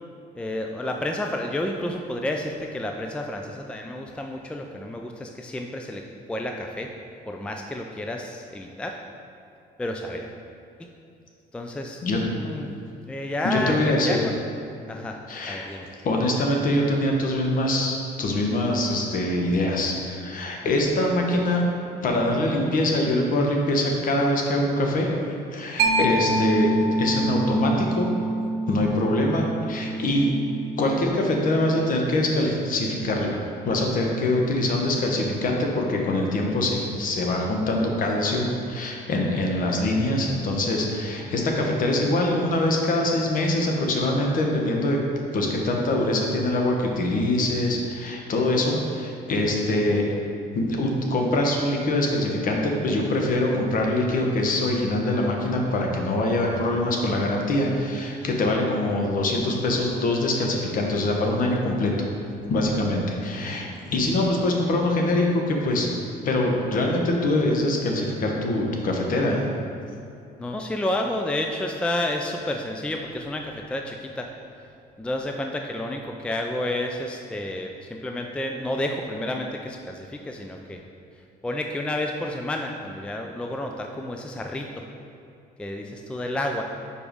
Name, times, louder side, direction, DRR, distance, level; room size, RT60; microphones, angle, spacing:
voice 1, 0.4-6.0 6.3-6.9 7.3-9.0 9.8-10.3 11.5-12.7 13.0-14.4 14.9-15.9 63.3-63.7 70.4-74.3 75.0-80.8 81.4-84.8 85.6-86.6, left 1 dB, 5° left, 3 dB, 0.4 m, -30 dB
voice 2, 13.4-14.2 15.3-21.6 22.0-25.2 25.5-28.1 28.7-30.3 30.8-45.0 45.3-50.1 50.5-62.1 62.5-65.9 66.2-69.4, left 1 dB, 55° left, 1 dB, 1.1 m, -24 dB
Mallet percussion, 25.8-33.1, right 2 dB, 70° right, 0.9 m, -27 dB
5.0 x 4.7 x 5.1 m, 2.6 s
cardioid pair, 110°, 17 cm